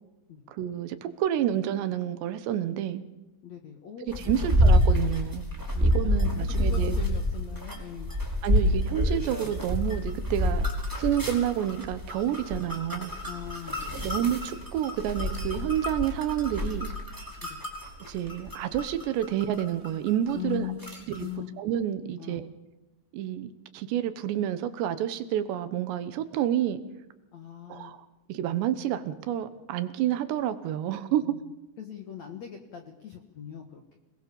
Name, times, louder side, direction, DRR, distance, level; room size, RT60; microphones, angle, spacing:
voice 1, 0.5-3.0 4.0-5.5 5.8-7.0 8.4-10.7 11.0-13.1 13.9-16.9 18.1-20.7 21.1-21.3 21.6-22.5 23.1-26.8 27.7-31.4, right 11 dB, 80° right, 11 dB, 3.3 m, -29 dB
voice 2, 3.4-4.5 5.7-8.1 13.3-14.1 20.3-20.8 21.2-21.5 22.2-22.4 27.3-28.0 31.2-31.4 31.8-34.0, left 11 dB, 55° left, 4 dB, 2.1 m, -40 dB
sound 1, 4.1-20.5 20.8-21.2, equal, 5° right, 4.6 m, -28 dB
26.0 x 20.0 x 7.1 m, 0.99 s
omnidirectional pair, 5.0 m